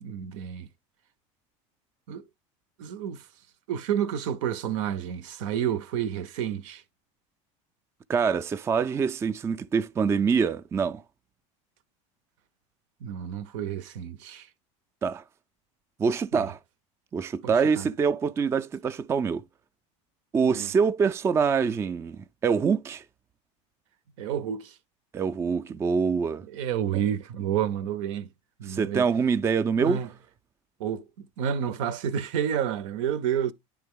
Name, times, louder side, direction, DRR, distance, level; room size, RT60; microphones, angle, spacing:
voice 1, 0.0-0.7 2.1-2.2 2.8-3.3 3.7-6.8 13.0-14.5 16.3-16.5 17.4-17.9 20.4-20.7 24.2-24.7 26.5-28.3 28.6-29.1 29.8-30.1 30.8-33.5, right 9 dB, 80° right, 0.7 m, -30 dB
voice 2, 8.1-11.0 15.0-15.2 16.0-16.6 17.1-19.4 20.3-23.0 25.1-26.4 28.7-30.0, right 6 dB, 15° right, 0.3 m, -25 dB
10.0 x 3.4 x 3.6 m
supercardioid pair, 120°, 16 cm